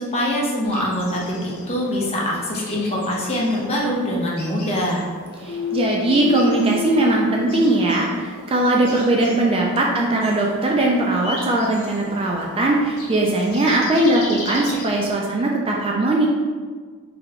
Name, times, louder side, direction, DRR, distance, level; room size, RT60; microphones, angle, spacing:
voice 1, 0.0-5.0, equal, 30° left, -4 dB, 0.8 m, -23 dB
sound 1, 0.6-15.1, left 2 dB, 70° left, 0.8 m, -38 dB
voice 2, 5.4-16.3, right 2 dB, 25° right, -1 dB, 0.3 m, -20 dB
sound 2, 5.5-9.1, left 6 dB, 50° left, 0.4 m, -29 dB
3.3 x 2.9 x 3.6 m, 1.5 s
head